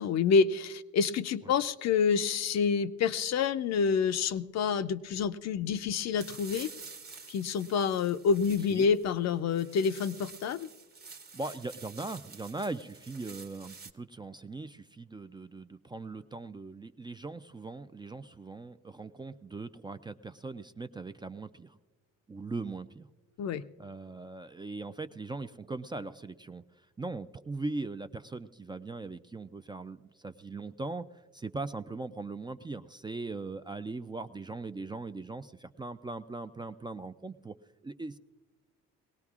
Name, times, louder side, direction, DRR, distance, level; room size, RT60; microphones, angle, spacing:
voice 1, 0.0-6.7 7.3-10.7 23.4-23.6, left 6 dB, 60° left, 11 dB, 0.5 m, -28 dB
sound 1, 6.2-13.9, right 4 dB, 30° right, 1.0 m, -49 dB
voice 2, 11.3-21.8 22.3-23.1 23.8-37.6 37.8-38.2, right 3 dB, 15° right, 10 dB, 0.3 m, -40 dB
21.0 x 17.5 x 2.4 m, 1.2 s
cardioid pair, 90°, 30 cm